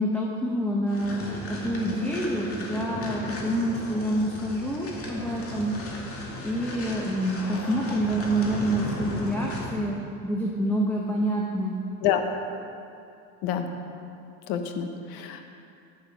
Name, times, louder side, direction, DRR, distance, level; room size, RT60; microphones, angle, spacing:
voice 1, 0.0-5.8 6.4-10.0 10.2-11.8, right 1 dB, 5° left, -3 dB, 1.3 m, -27 dB
sound 1, 0.9-9.9, left 1 dB, 35° left, 2.3 m, -36 dB
voice 2, 14.5-15.5, left 9 dB, 65° left, 6 dB, 1.2 m, -27 dB
9.1 x 9.0 x 6.0 m, 2.6 s
supercardioid pair, 90°, 39 cm